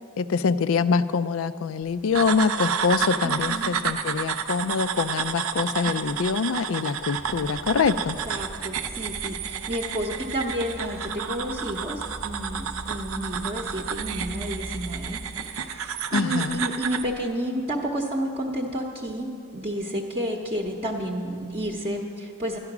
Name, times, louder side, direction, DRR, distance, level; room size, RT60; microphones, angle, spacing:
voice 1, 0.2-8.2 16.1-16.6, left 5 dB, 60° left, 14 dB, 0.4 m, -25 dB
sound 1, 2.2-17.1, right 7 dB, 65° right, 0.6 m, -31 dB
voice 2, 3.2-3.7 8.3-22.6, equal, 25° right, -1 dB, 0.8 m, -31 dB
sound 2, 7.1-15.9 16.6-17.0 17.6-17.7 21.3-21.9, equal, 5° left, 0.8 m, -42 dB
13.0 x 10.5 x 6.0 m, 2.6 s
head